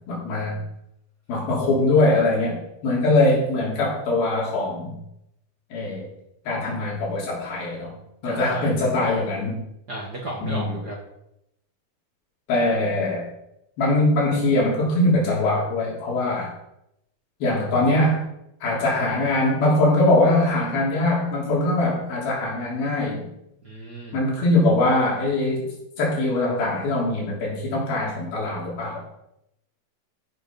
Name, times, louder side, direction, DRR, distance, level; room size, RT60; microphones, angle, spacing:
voice 1, 0.1-0.6 1.3-4.9 5.7-6.1 6.5-7.9 8.2-9.6 10.4-10.7 12.5-13.3 13.8-16.5 17.4-18.2 18.6-23.3 24.1-29.0, left 2 dB, 85° left, -4 dB, 5.1 m, -22 dB
voice 2, 8.2-8.8 9.9-11.0 23.6-24.2, right 1 dB, 55° right, -1 dB, 1.1 m, -33 dB
14.0 x 6.0 x 5.3 m, 0.81 s
omnidirectional pair, 4.1 m